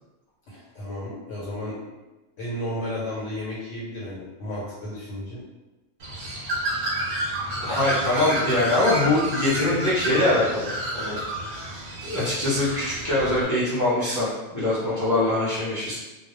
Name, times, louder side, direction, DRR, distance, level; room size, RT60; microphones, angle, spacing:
voice 1, 0.5-1.7 2.4-5.4, left 1 dB, 70° left, -7 dB, 1.0 m, -33 dB
Bird, 6.0-13.4, right 1 dB, 55° right, 0.7 m, -30 dB
voice 2, 7.6-11.2 12.0-15.9, left 2 dB, 20° left, -10 dB, 0.5 m, -23 dB
2.2 x 2.2 x 3.0 m, 1.1 s
omnidirectional pair, 1.4 m